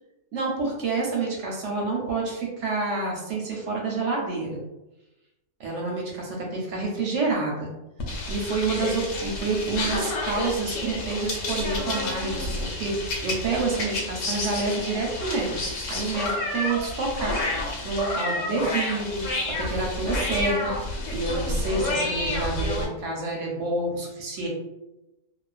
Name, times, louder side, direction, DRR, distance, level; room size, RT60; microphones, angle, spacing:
voice 1, 0.3-4.6 5.6-7.7 8.3-13.0 13.2-15.6 15.9-17.4 17.8-24.5, right 3 dB, 65° right, -2 dB, 0.8 m, -28 dB
sound 1, 8.0-22.9, left 2 dB, 70° left, 0.9 m, -30 dB
2.3 x 2.3 x 2.3 m, 0.96 s
omnidirectional pair, 1.5 m